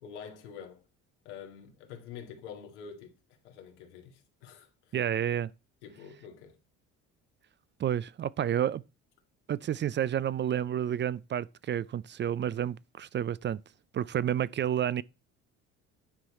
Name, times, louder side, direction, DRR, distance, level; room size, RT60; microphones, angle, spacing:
voice 1, 0.0-0.8 1.3-3.2 3.4-5.0 5.8-6.6, left 7 dB, 90° left, 1.9 m, -46 dB
voice 2, 4.9-5.5 7.8-8.8 9.5-13.6 13.9-15.0, right 10 dB, 35° right, 0.4 m, -30 dB
9.6 x 4.7 x 4.2 m
hypercardioid pair, 70°, 34 cm